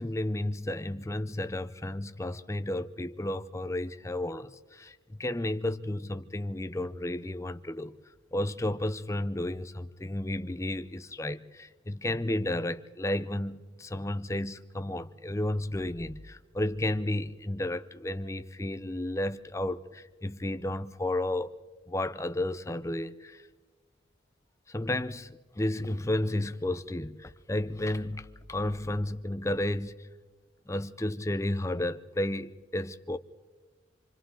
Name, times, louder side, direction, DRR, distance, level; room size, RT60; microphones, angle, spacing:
voice 1, 0.0-4.9 5.2-7.9 8.3-21.5 21.9-23.4 24.7-30.0 30.7-33.2, left 1 dB, 15° left, 0.6 m, -32 dB
28.0 x 24.5 x 3.8 m
head